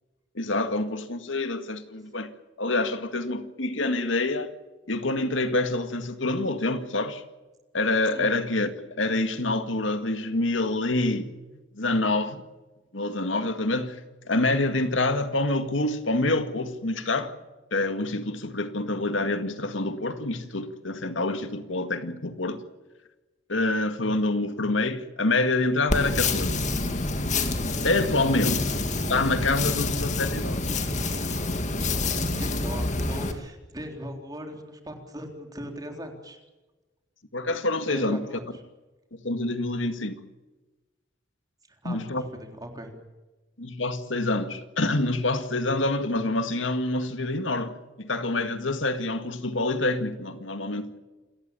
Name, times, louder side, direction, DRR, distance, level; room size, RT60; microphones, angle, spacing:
voice 1, 0.4-2.3 2.6-4.5 4.9-7.2 7.7-11.3 11.7-12.4 12.9-14.0 14.3-17.3 17.7-22.6 23.5-26.6 27.8-28.7 29.1-30.6 37.3-38.2 39.2-40.2 41.8-42.2 43.6-50.9, left 2 dB, 85° left, 2.0 m, -26 dB
sound 1, 25.9-33.3, left 2 dB, 40° left, 2.2 m, -27 dB
voice 2, 32.0-36.4 37.9-38.4 41.7-43.0, equal, 20° right, 3.6 m, -39 dB
28.5 x 14.5 x 8.6 m
head